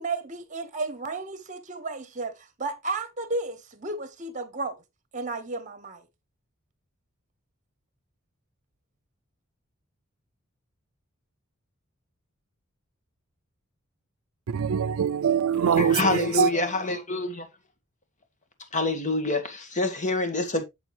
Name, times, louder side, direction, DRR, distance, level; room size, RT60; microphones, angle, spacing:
voice 1, 0.0-4.8 5.1-6.0, right 3 dB, 35° right, 1.4 m, -33 dB
voice 2, 14.5-16.5, right 7 dB, 80° right, 0.4 m, -23 dB
voice 3, 15.8-17.5 18.7-20.6, left 2 dB, 35° left, 1.7 m, -26 dB
7.9 x 7.1 x 3.2 m
head